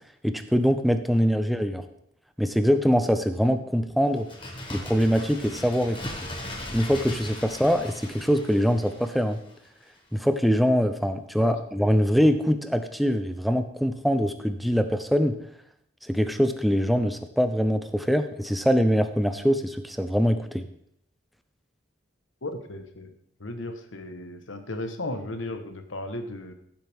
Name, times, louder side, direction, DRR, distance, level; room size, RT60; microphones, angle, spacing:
voice 1, 0.2-1.8 2.4-4.3 4.7-6.0 6.7-9.4 10.1-15.4 16.0-20.6, equal, ahead, 8 dB, 0.6 m, -23 dB
Bird, 4.1-9.7 10.0-10.1, left 1 dB, 25° left, 1.6 m, -38 dB
voice 2, 22.4-23.1 23.4-26.5, left 1 dB, 85° left, 7 dB, 1.3 m, -35 dB
15.0 x 7.6 x 3.6 m, 0.74 s
head